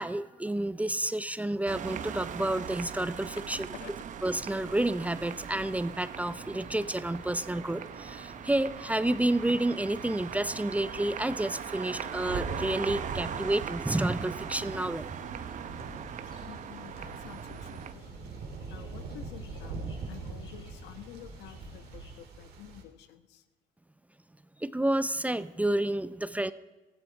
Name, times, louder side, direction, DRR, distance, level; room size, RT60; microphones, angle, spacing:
voice 1, 0.0-3.7 4.2-15.1 24.6-26.5, right 1 dB, 10° right, 15 dB, 0.5 m, -30 dB
Berlin Friedrichstraße Kochstraße crossroad amb XY, 1.7-17.9, right 8 dB, 50° right, 0.8 m, -40 dB
voice 2, 3.3-3.9 16.5-18.2 18.7-23.4, left 11 dB, 85° left, 10 dB, 1.2 m, -49 dB
sound 1, 4.2-22.2, left 4 dB, 30° left, 5.2 m, -56 dB
Thunder, 12.0-22.8, right 4 dB, 70° right, 2.7 m, -41 dB
19.0 x 14.5 x 4.6 m, 1.2 s
cardioid pair, 110°, 17 cm